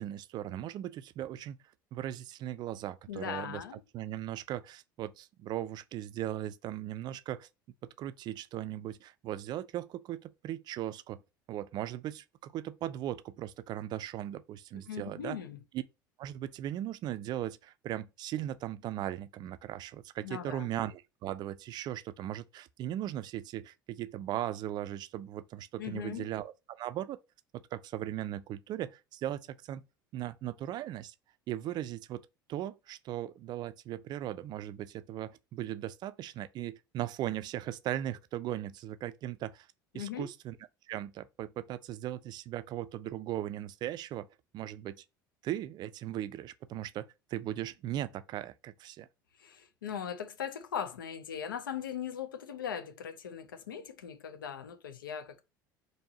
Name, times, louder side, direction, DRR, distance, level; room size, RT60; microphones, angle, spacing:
voice 1, 0.0-1.6 1.9-3.6 3.9-7.5 8.0-11.2 11.5-15.4 15.7-15.8 16.2-27.2 27.5-29.8 30.1-31.1 31.5-39.7 39.9-40.6 40.9-44.3 44.5-45.0 45.4-49.1, right 12 dB, 40° right, 0.4 m, -38 dB
voice 2, 3.1-3.8 14.9-15.6 20.2-20.7 25.8-26.3 39.9-40.3 49.4-55.4, left 8 dB, 75° left, 0.6 m, -39 dB
4.3 x 3.1 x 2.7 m
figure-of-eight pair, 70°, 11 cm